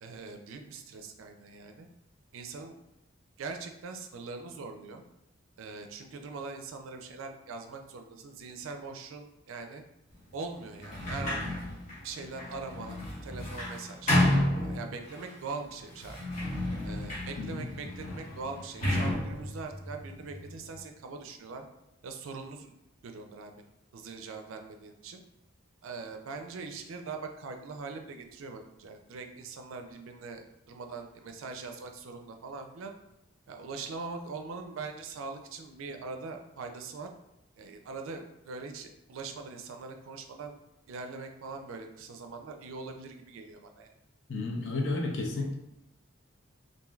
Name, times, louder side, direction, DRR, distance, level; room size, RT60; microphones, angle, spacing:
voice 1, 0.0-1.9 2.3-2.8 3.4-5.0 5.6-9.8 10.3-11.5 12.0-14.1 14.6-16.2 16.8-21.7 22.0-22.7 23.0-23.6 23.9-25.2 25.8-32.9 33.5-37.1 37.6-40.6 40.9-43.9, right 4 dB, 80° right, 5 dB, 0.4 m, -42 dB
Sliding door, 10.8-15.3 15.9-20.8, left 1 dB, 35° left, 0.8 m, -32 dB
voice 2, 17.4-17.7 44.3-45.5, left 2 dB, 65° left, 1 dB, 0.6 m, -32 dB
3.1 x 2.6 x 2.3 m, 0.89 s
head